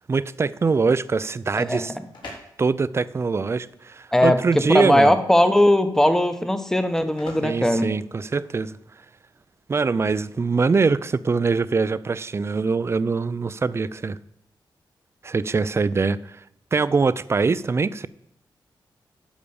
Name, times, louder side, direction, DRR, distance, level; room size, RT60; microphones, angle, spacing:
voice 1, 0.1-1.9 2.6-5.1 7.4-8.7 9.7-14.2 15.2-16.4 16.7-18.1, right 4 dB, 30° right, 17 dB, 0.4 m, -23 dB
voice 2, 1.5-1.9 4.1-8.0, left 1 dB, 5° left, 9 dB, 0.9 m, -19 dB
sound 1, 1.7-8.7, left 2 dB, 65° left, 4.1 m, -46 dB
12.0 x 5.1 x 6.9 m, 0.78 s
wide cardioid pair, 115°, 8 cm